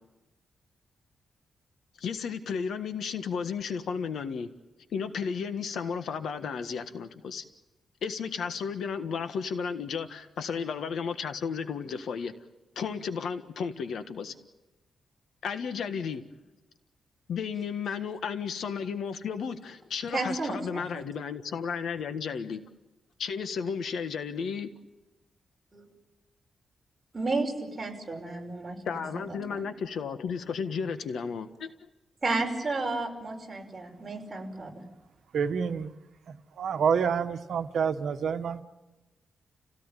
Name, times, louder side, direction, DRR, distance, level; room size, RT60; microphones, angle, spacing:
voice 1, 2.0-4.5 4.9-7.4 8.0-12.3 12.7-14.3 15.4-16.2 17.3-22.6 23.2-24.7 28.8-31.9, left 6 dB, 75° left, 9 dB, 1.5 m, -33 dB
voice 2, 20.1-20.8 25.7-25.9 27.1-29.2 29.5-29.6 32.2-34.7, right 3 dB, 20° right, 0 dB, 5.6 m, -32 dB
voice 3, 35.3-35.9 36.6-38.6, right 6 dB, 70° right, 8 dB, 1.4 m, -27 dB
29.5 x 17.0 x 9.2 m, 1.1 s
wide cardioid pair, 135°, 0 cm